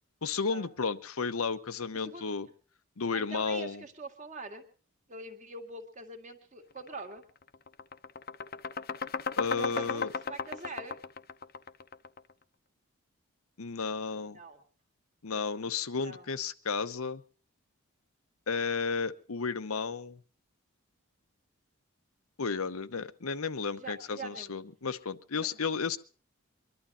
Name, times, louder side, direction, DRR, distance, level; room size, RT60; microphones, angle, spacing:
voice 1, 0.2-2.5 3.0-3.8 9.4-10.1 13.6-14.4 15.2-17.2 18.5-20.2 22.4-26.0, left 5 dB, 80° left, 12 dB, 0.8 m, -33 dB
voice 2, 1.9-2.3 3.1-4.7 5.1-7.2 9.6-11.0 14.3-14.6 15.3-15.4 16.0-16.3 23.7-24.6 25.3-25.6, right 3 dB, 35° right, 5 dB, 1.9 m, -44 dB
sound 1, 6.8-7.0 7.4-12.3, left 5 dB, 45° left, 0.8 m, -36 dB
23.5 x 11.5 x 4.2 m, 0.39 s
head